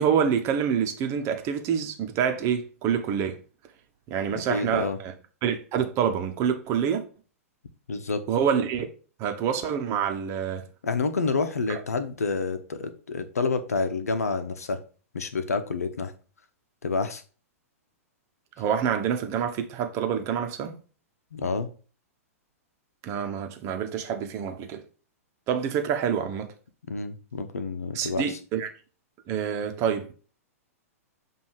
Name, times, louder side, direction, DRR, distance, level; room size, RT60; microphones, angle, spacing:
voice 1, 0.0-3.4 4.1-5.1 5.4-7.1 8.3-8.8 9.2-10.6 11.7-11.8 18.6-20.7 23.0-24.8 25.5-26.5 27.9-28.7 29.3-30.1, right 8 dB, 35° right, 1.0 m, -27 dB
voice 2, 4.3-5.0 7.9-8.2 10.8-14.8 15.1-16.1 16.8-17.2 21.3-21.7 26.9-28.4, left 4 dB, 85° left, 0.9 m, -28 dB
7.4 x 2.8 x 4.6 m
hypercardioid pair, 115°, 8 cm